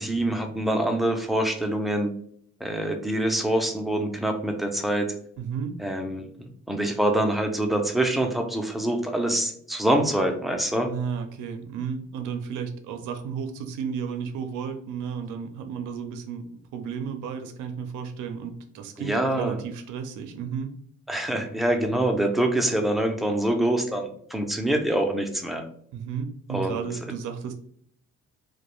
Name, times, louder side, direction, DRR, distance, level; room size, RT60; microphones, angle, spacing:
voice 1, 0.0-2.1 2.6-5.1 5.8-10.9 19.0-19.5 21.1-25.6 26.5-26.8, right 1 dB, ahead, 4 dB, 0.4 m, -25 dB
voice 2, 5.4-5.7 10.9-16.4 16.7-20.7 21.9-22.0 25.9-27.5, right 7 dB, 85° right, 7 dB, 0.5 m, -33 dB
2.3 x 2.1 x 2.9 m, 0.63 s
cardioid pair, 90°, 30 cm